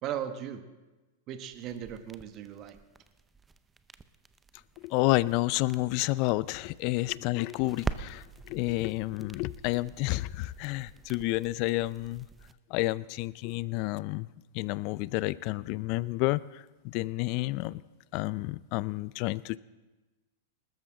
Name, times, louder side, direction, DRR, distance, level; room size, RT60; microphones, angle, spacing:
voice 1, 0.0-0.6 1.3-2.8, right 10 dB, 40° right, 9 dB, 1.2 m, -37 dB
sound 1, 1.5-12.5, right 4 dB, 15° right, 0.6 m, -45 dB
voice 2, 4.8-12.3 12.7-14.3 14.5-17.8 18.1-19.6, left 19 dB, 50° left, 20 dB, 0.4 m, -30 dB
19.5 x 13.0 x 3.8 m, 1.1 s
hypercardioid pair, 110°, 0 cm